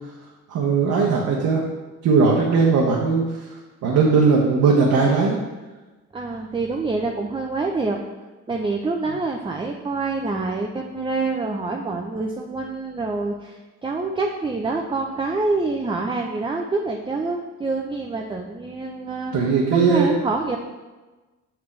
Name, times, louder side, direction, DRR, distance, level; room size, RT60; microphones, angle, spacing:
voice 1, 0.5-1.6 2.0-3.2 3.8-5.4 19.3-20.1, right 4 dB, 80° right, -3 dB, 1.1 m, -18 dB
voice 2, 6.1-8.0 8.5-19.5 19.9-20.6, right 3 dB, 15° right, 1 dB, 0.5 m, -26 dB
6.8 x 6.0 x 3.2 m, 1.2 s
cardioid pair, 90°, 30 cm